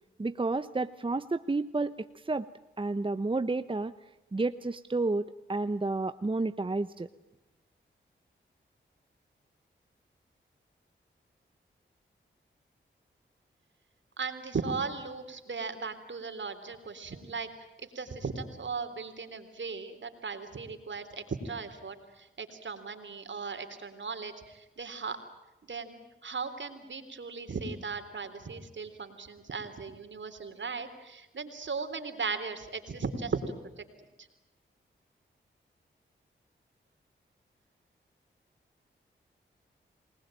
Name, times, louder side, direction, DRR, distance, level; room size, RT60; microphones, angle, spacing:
voice 1, 0.2-2.5 2.8-3.9 4.3-7.1, right 3 dB, 25° right, 13 dB, 0.9 m, -31 dB
voice 2, 14.2-17.5 18.0-25.2 25.6-33.8, right 4 dB, 65° right, 8 dB, 3.6 m, -37 dB
28.0 x 20.0 x 9.0 m, 0.98 s
cardioid pair, 50°, 21 cm